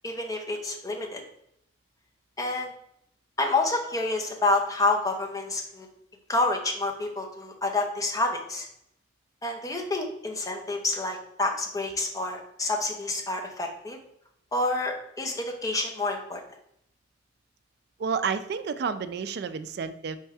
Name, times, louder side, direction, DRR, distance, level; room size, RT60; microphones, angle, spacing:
voice 1, 0.0-1.2 2.4-2.7 3.4-5.9 6.3-8.7 9.4-14.0 14.5-16.4, left 2 dB, 20° left, 2 dB, 0.6 m, -28 dB
voice 2, 18.0-20.2, right 6 dB, 55° right, 12 dB, 0.3 m, -30 dB
4.3 x 3.5 x 3.4 m, 0.74 s
head